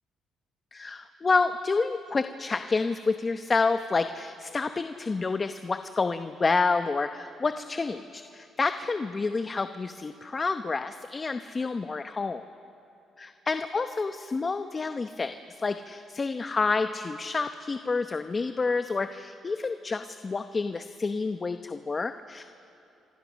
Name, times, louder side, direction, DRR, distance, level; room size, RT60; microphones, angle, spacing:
voice 1, 0.7-12.4 13.2-22.4, left 4 dB, 30° left, 9 dB, 0.9 m, -29 dB
28.5 x 25.0 x 6.3 m, 2.8 s
cardioid pair, 90°, 0 cm